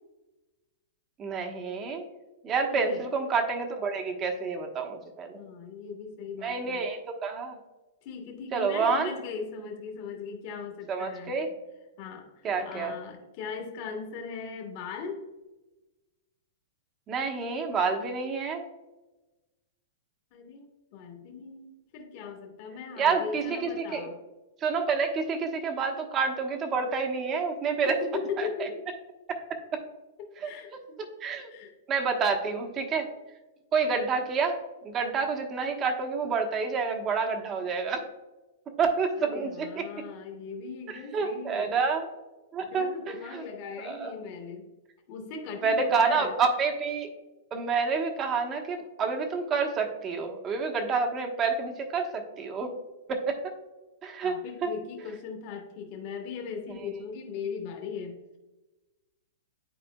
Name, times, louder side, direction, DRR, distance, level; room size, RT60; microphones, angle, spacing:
voice 1, 1.2-2.0 2.4-5.4 6.4-7.6 8.5-9.1 10.9-11.5 12.4-12.9 17.1-18.6 23.0-24.0 24.6-28.0 28.4-28.7 29.3-29.4 29.7-29.8 30.4-30.5 31.2-31.5 31.9-33.1 33.7-38.0 38.8-39.9 41.1-42.1 42.5-43.4 43.8-44.1 45.6-47.1 47.5-52.7 53.1-53.5 54.0-54.7, right 5 dB, 30° right, 4 dB, 1.1 m, -28 dB
voice 2, 2.7-3.0 5.3-6.9 8.0-11.4 12.0-15.2 20.3-24.2 27.8-28.9 30.2-31.0 31.5-31.7 39.2-41.8 42.6-44.7 45.1-46.3 54.2-58.4, left 5 dB, 50° left, 2 dB, 1.4 m, -39 dB
10.0 x 4.3 x 2.3 m, 1.1 s
hypercardioid pair, 120°, 0 cm